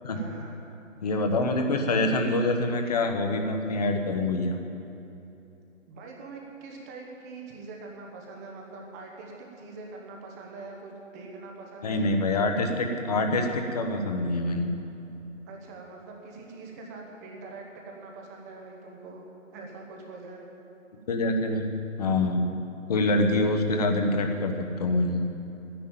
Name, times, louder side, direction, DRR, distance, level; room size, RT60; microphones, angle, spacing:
voice 1, 0.1-0.5 5.9-12.1 15.5-19.2 19.5-20.5, right 3 dB, 15° right, 0 dB, 1.1 m, -43 dB
voice 2, 1.0-4.6 11.8-14.7 21.1-21.7 22.0-22.5 22.9-25.2, left 2 dB, 30° left, 4 dB, 1.2 m, -25 dB
11.0 x 10.5 x 9.1 m, 2.9 s
figure-of-eight pair, 145°, 39 cm